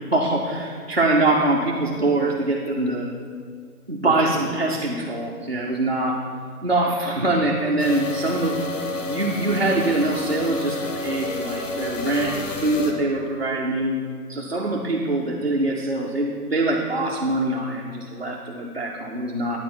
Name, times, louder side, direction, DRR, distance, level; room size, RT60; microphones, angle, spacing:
voice 1, 0.1-3.1 3.9-6.3 6.6-8.6 9.1-14.0 14.3-19.6, right 2 dB, 45° right, -2 dB, 0.4 m, -23 dB
sound 1, 7.8-12.9, left 3 dB, 55° left, 0.9 m, -30 dB
9.1 x 4.5 x 4.2 m, 2.1 s
figure-of-eight pair, 170°, 46 cm